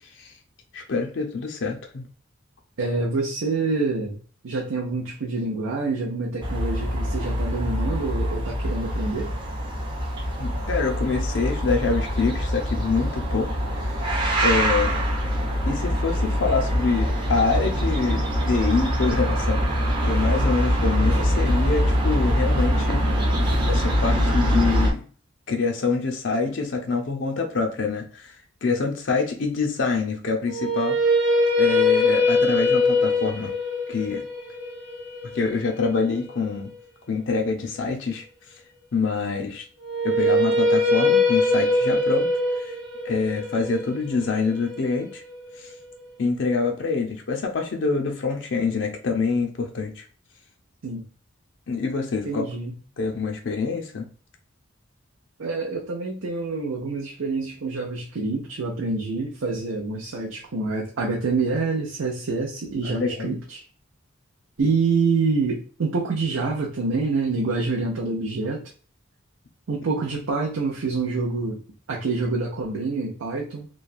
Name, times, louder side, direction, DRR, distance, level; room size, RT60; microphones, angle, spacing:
voice 1, 0.7-2.1 10.4-13.6 14.4-15.0 15.7-18.2 18.5-19.6 20.0-23.0 23.7-25.0 25.5-28.4 28.6-31.0 31.6-33.5 33.9-34.2 35.3-36.7 37.1-38.2 38.9-39.6 40.0-42.3 42.6-42.7 43.0-45.2 45.6-45.7 46.2-50.0 51.7-52.4 53.0-54.1 62.8-63.3, left 4 dB, 60° left, 3 dB, 0.5 m, -26 dB
voice 2, 2.8-4.2 4.4-9.3 50.8-51.0 52.3-52.7 55.4-63.6 64.6-68.6 69.7-71.6 71.9-73.7, right 3 dB, 90° right, -2 dB, 0.6 m, -26 dB
sound 1, 6.4-24.9, equal, 25° right, 0.6 m, -23 dB
sound 2, 30.5-36.6 39.8-45.9, left 2 dB, 60° right, 0.9 m, -22 dB
3.0 x 2.2 x 2.4 m, 0.41 s
head